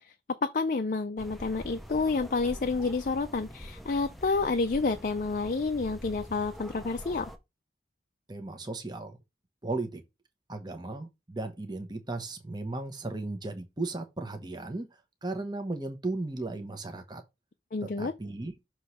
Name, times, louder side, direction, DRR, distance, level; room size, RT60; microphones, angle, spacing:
voice 1, 0.0-7.3 17.7-18.1, left 3 dB, 45° left, 0.5 m, -29 dB
sound 1, 1.2-7.4, equal, ahead, 0.6 m, -45 dB
voice 2, 8.3-9.2 9.6-10.0 10.5-14.9 15.2-17.2 18.0-18.5, right 2 dB, 25° right, 1.0 m, -35 dB
6.5 x 3.1 x 5.6 m
head